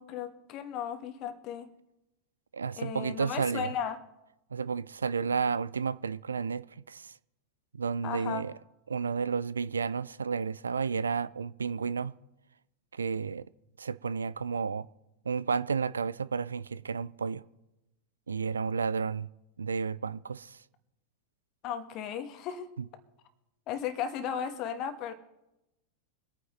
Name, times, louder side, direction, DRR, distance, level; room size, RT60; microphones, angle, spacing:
voice 1, 0.0-1.7 2.8-4.0 8.0-8.5 21.6-22.7 23.7-25.1, left 8 dB, 40° left, 1.3 m, -35 dB
voice 2, 2.5-3.7 4.5-7.1 7.7-8.5 8.9-12.1 12.9-13.5 13.8-14.9 15.3-17.4 18.3-19.3 19.6-20.6, right 5 dB, 75° right, 0.3 m, -32 dB
24.5 x 9.3 x 3.1 m
figure-of-eight pair, 90°, 0 cm